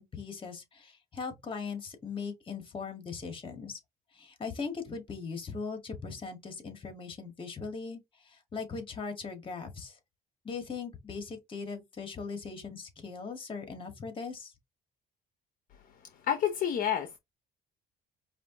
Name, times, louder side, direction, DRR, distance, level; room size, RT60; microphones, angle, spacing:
voice 1, 0.0-3.8 4.1-10.0 10.4-14.5, left 5 dB, 30° left, 1.8 m, -39 dB
voice 2, 16.3-17.2, left 9 dB, 55° left, 0.8 m, -28 dB
5.0 x 2.7 x 3.8 m
cardioid pair, 110°, 17 cm